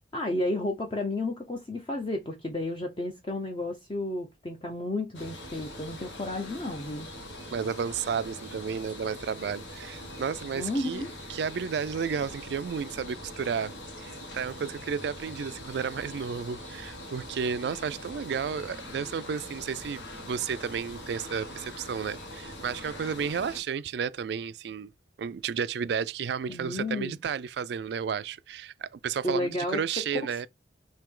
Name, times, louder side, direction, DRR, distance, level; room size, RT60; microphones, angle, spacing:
voice 1, 0.1-7.1 10.5-11.1 26.5-27.2 29.2-30.0, left 2 dB, 30° left, 0.7 m, -32 dB
sound 1, 5.1-23.6, left 1 dB, 90° left, 1.6 m, -43 dB
voice 2, 7.5-11.0 11.3-24.9 25.2-30.5, right 6 dB, 65° right, 0.3 m, -32 dB
4.5 x 2.8 x 3.7 m
head